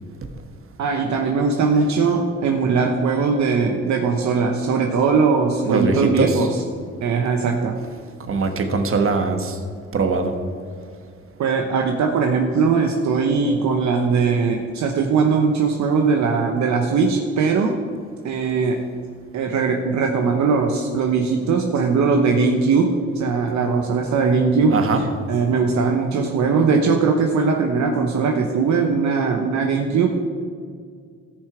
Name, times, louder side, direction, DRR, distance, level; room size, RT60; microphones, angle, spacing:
voice 1, 0.8-6.5 7.0-7.8 11.4-17.8 18.2-18.8 19.3-24.8 25.3-30.1, right 5 dB, 65° right, 3 dB, 0.9 m, -20 dB
voice 2, 5.6-6.5 8.3-9.6 9.9-10.3 24.7-25.1, right 4 dB, 45° right, 6 dB, 1.3 m, -21 dB
14.0 x 6.7 x 4.9 m, 2.1 s
cardioid pair, 90°, 30 cm